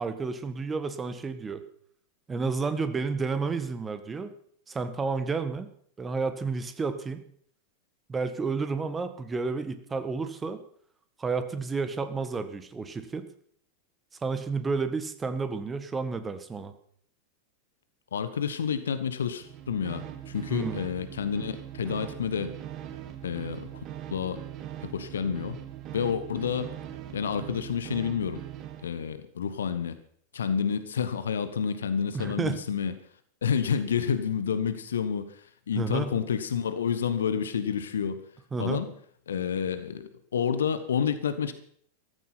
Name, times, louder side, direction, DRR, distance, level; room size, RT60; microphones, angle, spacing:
voice 1, 0.0-1.6 2.3-4.3 4.7-5.7 6.0-7.2 8.1-10.6 11.2-13.3 14.2-16.7 20.5-20.8 32.1-32.6 35.7-36.1 38.5-38.8, right 4 dB, 15° right, 10 dB, 1.7 m, -31 dB
voice 2, 18.1-22.6 23.2-23.8 24.1-24.4 24.8-25.6 25.9-26.7 27.1-28.4 28.8-30.0 30.3-32.9 33.4-35.4 35.7-38.2 38.6-38.9 39.3-41.5, left 7 dB, 65° left, 12 dB, 1.2 m, -29 dB
sound 1, 19.4-28.9, right 11 dB, 35° right, 1.6 m, -41 dB
14.5 x 14.0 x 5.9 m, 0.62 s
figure-of-eight pair, 90°, 0 cm